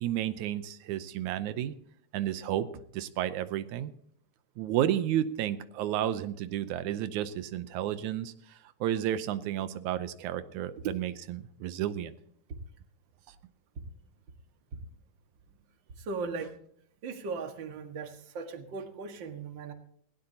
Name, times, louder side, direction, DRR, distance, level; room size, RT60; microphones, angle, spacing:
voice 1, 0.0-1.7 2.1-2.7 2.9-3.9 4.6-8.3 8.8-12.1, right 11 dB, 85° right, 12 dB, 2.2 m, -31 dB
voice 2, 16.0-16.5 17.0-19.7, right 4 dB, 45° right, 5 dB, 2.1 m, -37 dB
19.5 x 16.5 x 2.8 m, 0.66 s
omnidirectional pair, 3.3 m